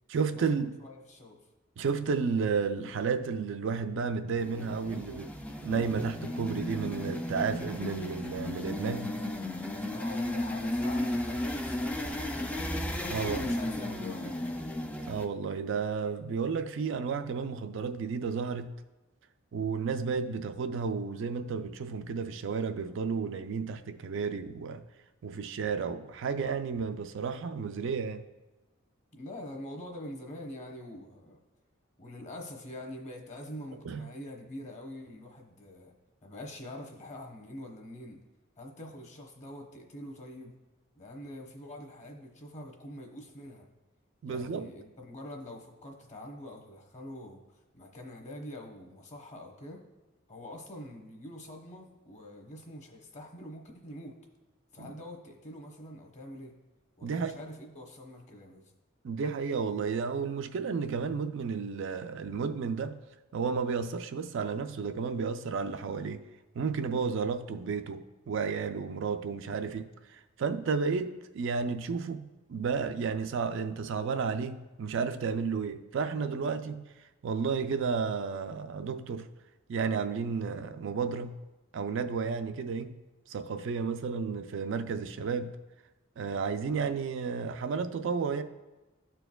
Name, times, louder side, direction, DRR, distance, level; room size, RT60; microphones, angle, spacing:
voice 1, 0.1-0.8 1.8-5.3 5.6-9.1 13.1-13.5 15.1-18.8 19.5-24.8 25.2-28.3 33.8-34.0 44.2-44.7 54.8-54.9 57.0-57.3 59.0-63.0 63.3-66.2 66.5-76.8 77.2-79.3 79.7-81.4 81.7-83.0 83.3-85.6 86.2-88.4, right 5 dB, 65° right, 0.4 m, -32 dB
voice 2, 0.8-1.4 9.9-12.6 13.2-14.6 29.1-31.4 32.0-35.9 36.2-38.2 38.6-40.5 41.0-43.7 44.2-49.8 50.3-54.2 54.7-56.5 57.0-58.7, left 1 dB, 35° left, 1.0 m, -45 dB
sound 1, 4.4-15.3, left 1 dB, 5° left, 0.3 m, -34 dB
13.0 x 4.5 x 2.3 m
head